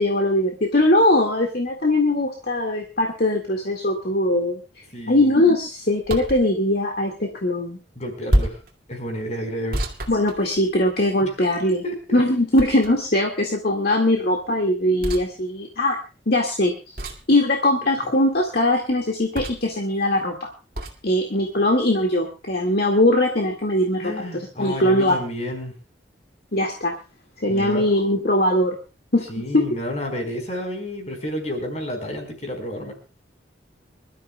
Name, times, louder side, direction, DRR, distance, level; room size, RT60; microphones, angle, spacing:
voice 1, 0.0-4.6 5.1-7.8 10.1-11.8 12.1-16.0 16.3-16.7 17.3-20.5 21.0-25.1 26.5-26.9 27.4-28.8 29.1-29.6, left 1 dB, 55° left, 2 dB, 2.0 m, -21 dB
voice 2, 4.9-5.3 8.0-8.6 8.9-9.8 11.2-11.3 11.8-12.2 24.0-25.7 27.5-27.9 29.3-32.9, equal, 35° left, 4 dB, 4.7 m, -30 dB
sound 1, 6.0-6.5 8.3-8.7 9.7-10.9 12.6-13.2 15.0-15.3 17.0-17.3 19.3-19.8 20.7-21.0, equal, 50° right, 2.3 m, -26 dB
26.0 x 13.0 x 2.3 m, 0.33 s
head